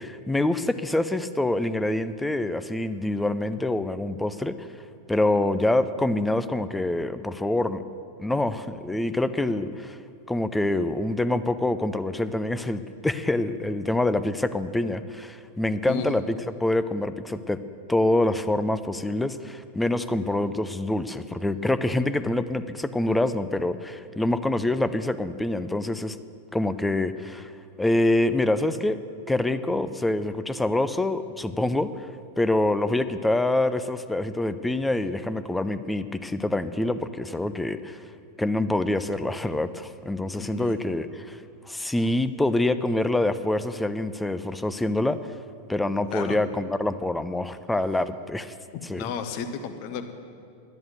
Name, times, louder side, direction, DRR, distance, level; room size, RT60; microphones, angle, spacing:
voice 1, 0.0-4.7 5.1-7.8 8.2-10.0 10.3-17.6 17.9-26.2 26.5-27.5 27.8-29.0 29.3-32.1 32.4-38.0 38.4-41.4 41.7-45.4 45.7-48.5 48.9-49.0, left 1 dB, 5° left, 13 dB, 0.5 m, -26 dB
voice 2, 40.3-40.8 46.1-46.4 48.9-50.1, left 6 dB, 45° left, 9 dB, 1.1 m, -33 dB
11.0 x 10.5 x 8.0 m, 2.4 s
figure-of-eight pair, 90°, 0 cm